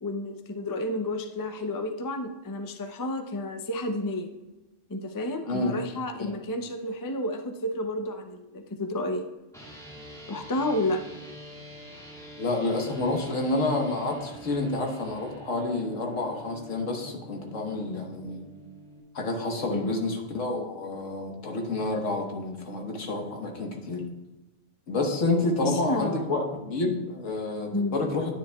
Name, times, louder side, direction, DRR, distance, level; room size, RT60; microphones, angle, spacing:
voice 1, 0.0-4.3 4.9-9.2 10.3-11.0 19.7-19.9 25.6-26.3 27.7-28.0, left 1 dB, 25° left, 5 dB, 0.4 m, -31 dB
voice 2, 5.5-5.8 6.2-6.3 12.4-18.5 19.1-24.0 24.9-28.3, left 2 dB, 75° left, 2 dB, 1.6 m, -29 dB
sound 1, 9.5-19.0, equal, 5° left, 1.7 m, -46 dB
10.0 x 9.5 x 2.3 m, 1.0 s
omnidirectional pair, 1.3 m